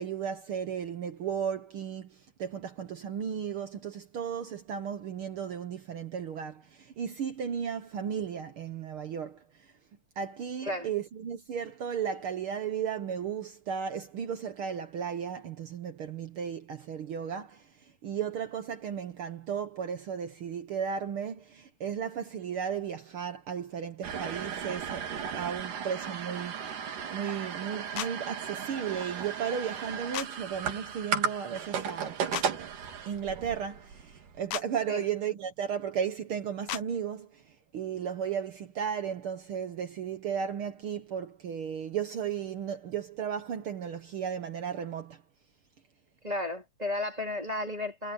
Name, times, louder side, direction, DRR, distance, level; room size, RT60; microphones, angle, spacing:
voice 1, 0.0-9.4 10.2-17.7 18.0-25.1 25.4-32.2 33.1-37.4 37.7-45.2, right 7 dB, 65° right, 1.4 m, -35 dB
sound 1, 24.0-34.4, right 7 dB, 85° right, 4.0 m, -35 dB
sound 2, 28.0-28.1 30.1-30.3 32.3-32.5 34.5-34.7 36.7-36.8, left 13 dB, 70° left, 1.9 m, -34 dB
voice 2, 46.2-48.1, left 2 dB, 10° right, 3.4 m, -33 dB
omnidirectional pair, 3.6 m